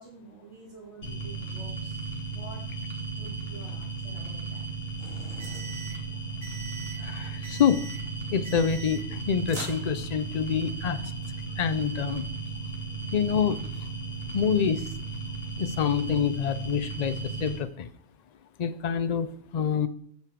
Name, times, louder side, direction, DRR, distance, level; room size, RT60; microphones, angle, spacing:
voice 1, 0.0-2.0 2.3-2.6 3.2-4.6, right 3 dB, 50° right, -3 dB, 3.3 m, -48 dB
sound 1, 1.0-17.6, right 4 dB, 45° left, 2.4 m, -35 dB
sound 2, 5.0-6.0 6.4-7.0 7.4-8.0 8.4-9.2 9.5-10.4, right 3 dB, 65° right, 2.7 m, -42 dB
voice 2, 7.0-7.9 8.3-11.0 11.6-12.2 13.1-13.7 14.3-14.9 15.6-17.9 18.6-19.9, left 7 dB, 85° left, 12 dB, 0.3 m, -27 dB
9.4 x 6.9 x 4.6 m, 0.65 s
omnidirectional pair, 1.5 m